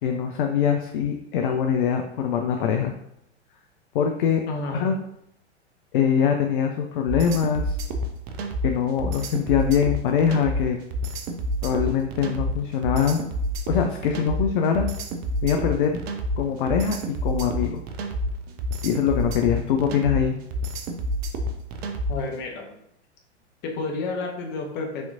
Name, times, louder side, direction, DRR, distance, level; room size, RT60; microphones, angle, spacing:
voice 1, 0.0-2.9 3.9-4.4 4.7-4.9 5.9-7.7 8.6-10.8 11.6-13.2 13.7-14.9 15.4-16.0 16.4-17.8 18.8-20.4, left 7 dB, 50° left, 4 dB, 0.5 m, -23 dB
voice 2, 4.5-4.9 22.1-22.7 23.6-25.1, left 3 dB, 30° left, 1 dB, 1.1 m, -30 dB
sound 1, 7.1-22.3, equal, 40° right, 0.6 m, -28 dB
6.2 x 2.9 x 2.6 m, 0.76 s
figure-of-eight pair, 100°, 35 cm